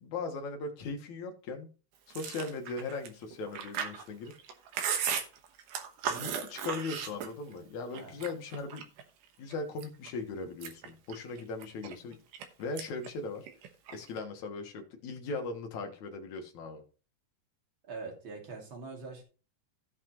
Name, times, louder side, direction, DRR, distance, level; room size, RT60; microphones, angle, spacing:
voice 1, 0.0-1.7 2.1-4.3 6.1-8.8 9.4-12.2 12.6-13.5 13.9-16.8, left 3 dB, 60° left, 4 dB, 2.1 m, -39 dB
Chewing mastication, 2.1-7.6 7.9-9.0 9.5-10.1 10.5-12.5 12.8-13.1 13.4-14.2, right 7 dB, 65° right, 2.3 m, -36 dB
voice 2, 17.9-19.2, right 4 dB, 35° right, 1 dB, 2.7 m, -43 dB
16.5 x 5.8 x 3.0 m, 0.35 s
omnidirectional pair, 4.6 m